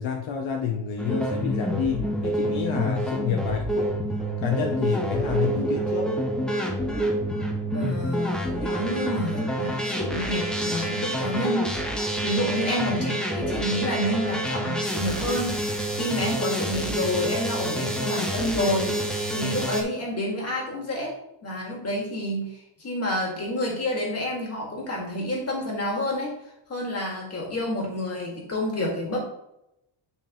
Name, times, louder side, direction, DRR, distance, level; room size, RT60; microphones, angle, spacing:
voice 1, 0.0-3.9 4.4-6.1, left 7 dB, 65° left, 3 dB, 0.9 m, -28 dB
sound 1, 1.0-19.8, right 1 dB, ahead, 0.7 m, -28 dB
voice 2, 7.7-11.7 12.2-15.5 15.9-19.0 19.3-21.1 21.4-22.5 22.8-26.3 26.7-29.2, left 1 dB, 30° left, -1 dB, 2.0 m, -29 dB
9.4 x 5.1 x 3.0 m, 0.83 s
cardioid pair, 175°, 50 cm